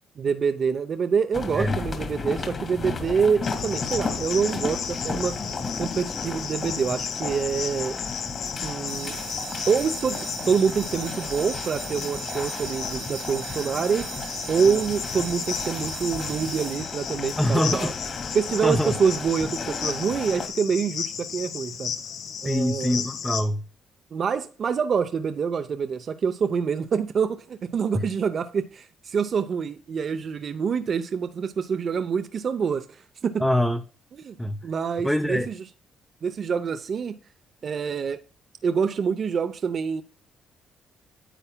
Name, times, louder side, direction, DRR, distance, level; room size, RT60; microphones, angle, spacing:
voice 1, 0.2-5.4 5.8-8.0 8.6-9.2 9.7-14.1 14.5-17.9 18.3-22.0 22.4-23.0 24.1-33.4 34.2-34.4 34.6-35.6 36.2-37.2 37.6-38.2 38.6-40.0, right 6 dB, 50° right, 0.6 m, -26 dB
sound 1, 1.3-20.5, left 4 dB, 40° left, 1.8 m, -34 dB
Cricket, 3.4-23.4, left 7 dB, 75° left, 1.3 m, -34 dB
sound 2, 8.9-17.5, right 7 dB, 80° right, 1.7 m, -39 dB
voice 2, 17.4-17.9 18.6-18.9 22.4-23.6 33.4-33.8 34.4-34.6 35.0-35.5, left 1 dB, 5° left, 0.6 m, -24 dB
10.0 x 8.0 x 2.2 m
cardioid pair, 90°, 0 cm